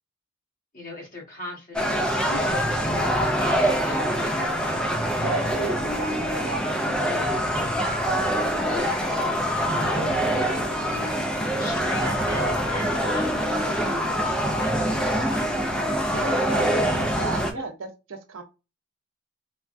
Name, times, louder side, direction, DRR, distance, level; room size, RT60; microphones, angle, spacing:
voice 1, 0.7-5.2 8.5-11.2 11.6-16.5 17.5-17.6, left 1 dB, 45° left, 1.1 m, -39 dB
sound 1, 1.7-17.5, equal, 5° left, 0.3 m, -24 dB
voice 2, 2.3-2.6 5.2-8.3 12.8-13.1 13.8-14.1 16.2-18.4, right 4 dB, 75° right, 0.6 m, -36 dB
3.3 x 2.1 x 2.5 m
head